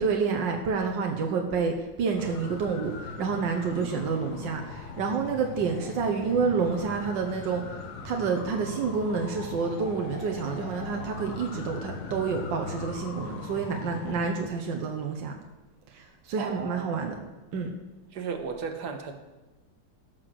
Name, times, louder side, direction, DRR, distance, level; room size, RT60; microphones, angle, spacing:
voice 1, 0.0-7.6 8.0-15.4 15.9-17.2 17.5-17.7, right 5 dB, 80° right, 3 dB, 1.8 m, -29 dB
sound 1, 2.2-14.3, left 4 dB, 60° left, 1.5 m, -40 dB
voice 2, 16.4-17.1 18.1-19.1, right 5 dB, 60° right, 5 dB, 1.8 m, -35 dB
16.5 x 6.0 x 6.3 m, 1.2 s
omnidirectional pair, 2.0 m